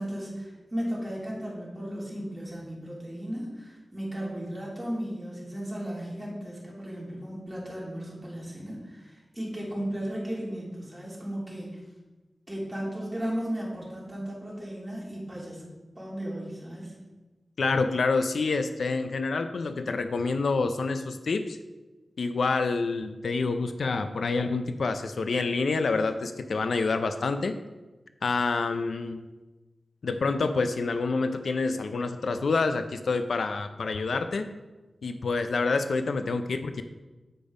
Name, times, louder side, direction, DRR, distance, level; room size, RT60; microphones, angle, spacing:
voice 1, 0.0-11.8 12.5-15.6 15.9-16.9, equal, 15° right, -5 dB, 3.0 m, -35 dB
voice 2, 17.6-21.6 22.2-27.6 28.2-29.2 30.0-34.5 35.0-36.8, left 4 dB, 90° left, 9 dB, 0.5 m, -27 dB
8.9 x 5.1 x 5.2 m, 1.2 s
wide cardioid pair, 95°, 0 cm